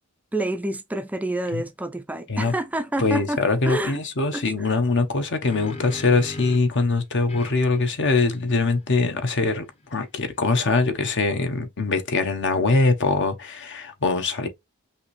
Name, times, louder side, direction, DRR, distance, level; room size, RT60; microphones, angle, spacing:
voice 1, 0.3-3.4 3.7-4.0 4.3-4.7, right 1 dB, 5° right, 0.4 m, -28 dB
sound 1, 2.4-2.6 5.0-6.8 7.3-10.6, left 2 dB, 30° left, 0.8 m, -41 dB
voice 2, 3.0-9.7 9.9-14.5, left 3 dB, 60° left, 1.0 m, -22 dB
5.5 x 2.7 x 3.1 m
head